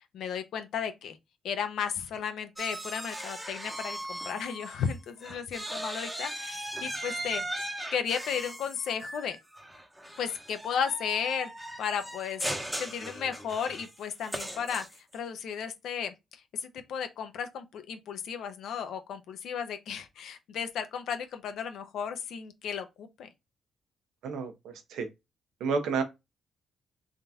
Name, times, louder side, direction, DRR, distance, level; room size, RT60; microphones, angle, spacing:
voice 1, 0.1-1.2 1.4-7.4 7.9-9.4 10.2-11.5 11.8-12.4 12.8-16.4 16.7-23.3, left 7 dB, 80° left, 0.8 m, -34 dB
sound 1, 2.6-4.9 5.2-15.2, right 1 dB, 10° right, 0.9 m, -38 dB
voice 2, 24.2-25.1 25.6-26.0, right 5 dB, 90° right, 0.9 m, -30 dB
3.7 x 2.8 x 3.4 m
cardioid pair, 95°, 0 cm